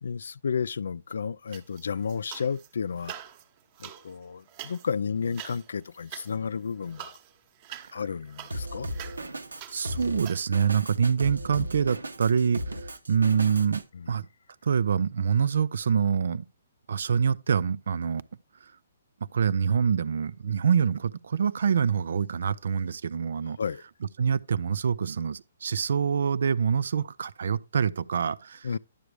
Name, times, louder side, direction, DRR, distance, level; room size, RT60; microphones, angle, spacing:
voice 1, 0.0-3.1 3.8-7.2 7.9-8.9 13.9-14.1 23.6-23.8 28.6-28.8, left 6 dB, 70° left, 0.3 m, -32 dB
sound 1, 1.5-2.7 3.0-10.4, right 11 dB, 35° right, 1.1 m, -45 dB
Drum kit, 8.5-13.8, equal, 85° right, 0.8 m, -36 dB
voice 2, 9.7-14.3 14.6-16.4 16.9-18.2 19.3-23.6 24.2-28.7, right 7 dB, 65° right, 0.5 m, -26 dB
11.0 x 6.8 x 3.2 m
figure-of-eight pair, 130°, 0 cm